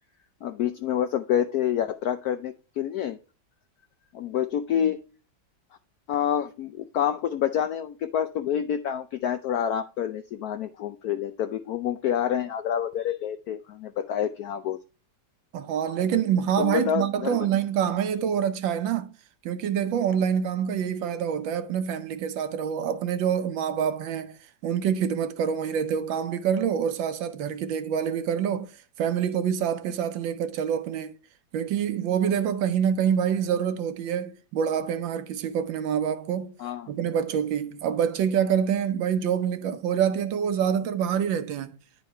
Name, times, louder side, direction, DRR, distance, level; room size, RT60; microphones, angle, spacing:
voice 1, 0.4-3.2 4.1-5.0 6.1-14.8 16.6-17.5 36.6-36.9, left 9 dB, 75° left, 0.8 m, -28 dB
voice 2, 15.5-19.1 19.4-24.4 24.6-28.7 29.0-31.1 31.5-36.5 36.9-41.8, right 8 dB, 75° right, 1.5 m, -26 dB
9.8 x 4.6 x 4.3 m
omnidirectional pair, 2.1 m